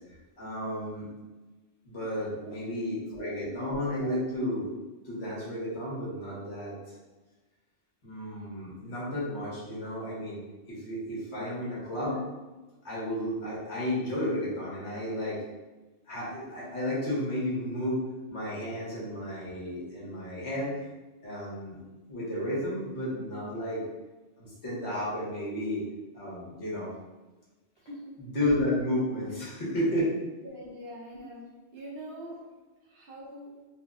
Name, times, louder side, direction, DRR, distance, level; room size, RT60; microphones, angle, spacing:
voice 1, 0.4-1.1 1.8-4.7 5.0-6.8 8.0-10.4 10.7-12.2 12.8-15.4 16.1-18.0 18.3-20.8 21.2-21.8 22.1-23.8 24.4-25.8 26.1-26.9 28.2-30.1, left 1 dB, 65° left, -7 dB, 1.4 m, -32 dB
voice 2, 2.4-3.5 11.3-11.5 27.8-28.2 30.4-31.4 31.7-32.4 32.8-33.6, equal, 60° right, -3 dB, 0.9 m, -44 dB
3.4 x 2.1 x 3.6 m, 1.2 s
omnidirectional pair, 1.2 m